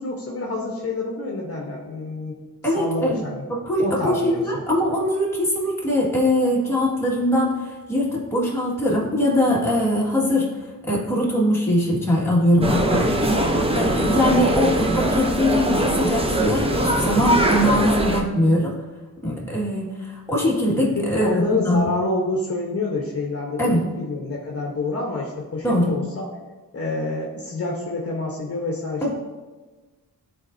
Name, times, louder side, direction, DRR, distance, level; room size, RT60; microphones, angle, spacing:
voice 1, 0.0-2.3 2.8-3.5 3.8-4.6 21.0-26.2 26.7-29.1, left 2 dB, 40° left, -2 dB, 1.0 m, -27 dB
voice 2, 2.6-3.2 3.5-10.5 10.9-18.7 19.2-21.9 23.6-23.8 25.6-25.9 29.0-29.1, left 1 dB, 10° left, -5 dB, 1.8 m, -22 dB
sound 1, 12.6-18.2, right 1 dB, 15° right, 0.7 m, -21 dB
9.6 x 4.2 x 2.6 m, 1.2 s
wide cardioid pair, 100°, 35 cm